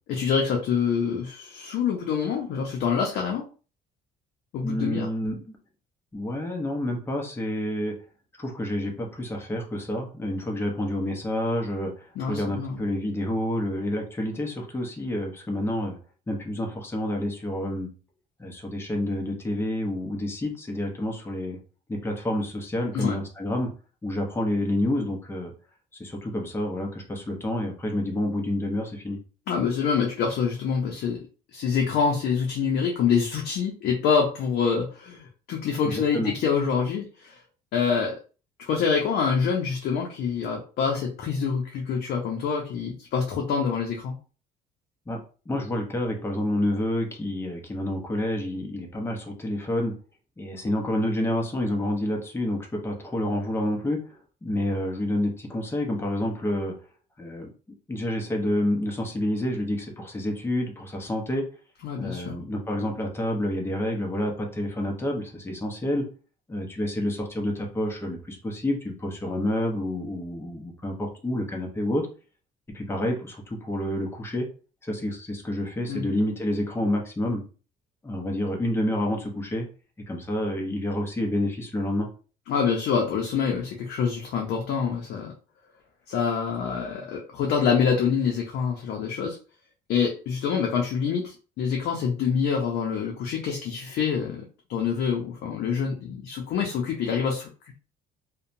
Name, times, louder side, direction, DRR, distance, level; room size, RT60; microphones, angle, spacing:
voice 1, 0.1-3.4 4.5-5.1 12.2-12.8 22.9-23.1 29.5-31.2 31.5-37.4 37.7-38.2 38.7-44.2 61.8-62.4 75.9-76.1 82.5-85.3 86.1-89.4 89.9-94.4 94.7-97.5, left 6 dB, 70° left, 0 dB, 0.6 m, -26 dB
voice 2, 4.6-5.4 6.1-7.9 8.4-16.0 16.3-17.9 18.4-21.6 21.9-23.7 24.0-25.5 26.0-29.2 35.8-36.3 45.1-45.2 45.5-49.9 50.4-54.1 54.4-56.7 57.2-57.5 57.9-61.5 62.0-66.1 66.5-72.1 72.7-74.5 74.8-77.4 78.0-79.7 80.1-82.1, left 1 dB, 15° left, 1 dB, 0.7 m, -28 dB
2.7 x 2.2 x 2.6 m, 0.36 s
cardioid pair, 110°, 17 cm